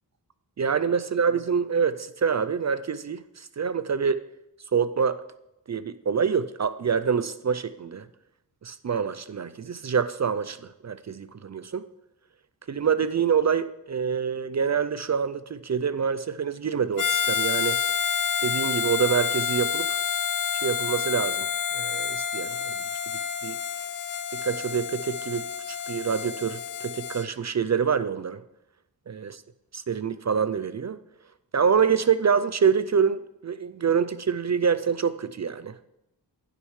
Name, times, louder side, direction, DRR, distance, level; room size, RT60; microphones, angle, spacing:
voice 1, 0.6-4.2 4.7-5.2 5.7-8.1 8.6-11.8 12.7-17.8 18.4-20.0 20.6-21.5 21.7-22.7 23.4-23.6 24.3-28.4 29.1-29.3 29.7-31.0 31.5-35.8, right 6 dB, 40° right, 14 dB, 0.4 m, -26 dB
Harmonica, 17.0-27.3, left 7 dB, 50° left, 0.5 m, -28 dB
15.5 x 6.4 x 3.2 m, 0.88 s
cardioid pair, 50°, 43 cm